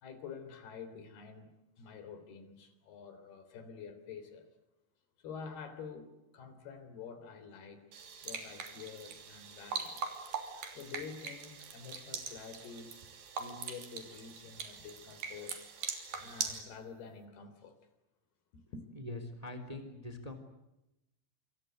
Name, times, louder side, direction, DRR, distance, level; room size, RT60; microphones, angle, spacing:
voice 1, 0.0-4.5 5.2-7.9 8.2-10.0 10.8-13.0 13.4-15.6 16.2-17.8 18.5-18.9, left 6 dB, 85° left, 10 dB, 5.4 m, -48 dB
sound 1, 7.9-16.6, right 6 dB, 65° right, 4.8 m, -42 dB
voice 2, 18.9-20.3, left 2 dB, 10° right, 7 dB, 3.0 m, -43 dB
27.5 x 26.0 x 8.0 m, 0.91 s
omnidirectional pair, 4.4 m